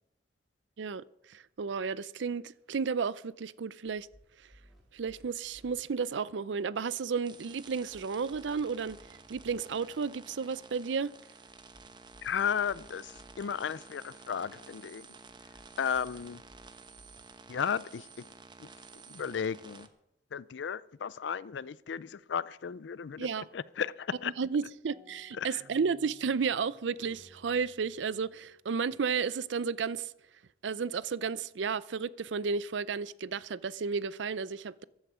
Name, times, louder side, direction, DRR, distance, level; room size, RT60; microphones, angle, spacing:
voice 1, 0.8-4.1 4.9-9.0 9.3-11.1 23.2-23.5 24.4-30.1 30.6-34.8, right 5 dB, 85° right, 0.5 m, -33 dB
sound 1, 3.9-5.8 7.7-9.6 11.5-13.4 15.3-17.2, equal, ahead, 2.7 m, -60 dB
sound 2, 7.2-19.9, right 4 dB, 25° right, 0.9 m, -52 dB
voice 2, 12.2-15.1 15.8-16.4 17.5-18.3 18.6-18.7 19.1-19.9 20.3-23.3 23.5-24.3 25.4-25.5, left 7 dB, 80° left, 0.4 m, -34 dB
sound 3, 24.9-29.5, right 1 dB, 40° right, 7.7 m, -60 dB
15.0 x 11.0 x 6.2 m
head